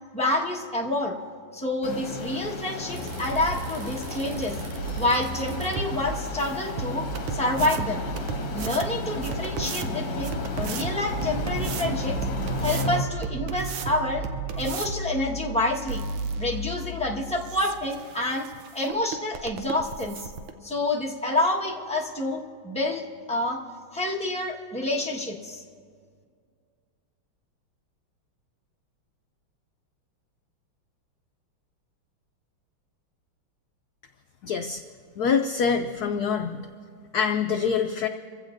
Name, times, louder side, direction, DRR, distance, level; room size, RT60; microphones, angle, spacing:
voice 1, 0.1-1.1 1.5-4.6 5.0-8.0 8.5-12.2 12.6-14.3 14.5-16.0 16.4-20.3 20.6-23.6 23.9-25.6, left 1 dB, 5° left, -3 dB, 0.8 m, -28 dB
sound 1, 1.8-13.0, left 3 dB, 60° left, 2.2 m, -34 dB
sound 2, 2.9-20.5, right 4 dB, 85° right, 1.7 m, -34 dB
voice 2, 34.4-34.8 35.2-36.6 37.1-38.1, left 6 dB, 80° left, 6 dB, 0.8 m, -25 dB
28.0 x 15.5 x 2.6 m, 2.1 s
omnidirectional pair, 2.4 m